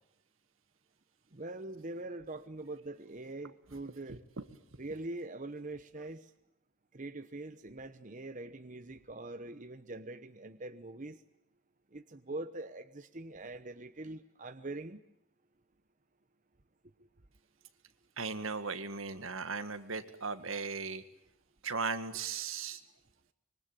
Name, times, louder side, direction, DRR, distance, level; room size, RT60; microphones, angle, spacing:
voice 1, 1.3-4.2 4.8-6.2 6.9-11.2 11.9-15.0, right 2 dB, 35° right, 9 dB, 1.0 m, -43 dB
voice 2, 4.1-4.5 18.2-21.0 21.6-22.8, right 4 dB, 75° right, 10 dB, 1.9 m, -37 dB
25.5 x 23.5 x 9.2 m, 0.74 s
head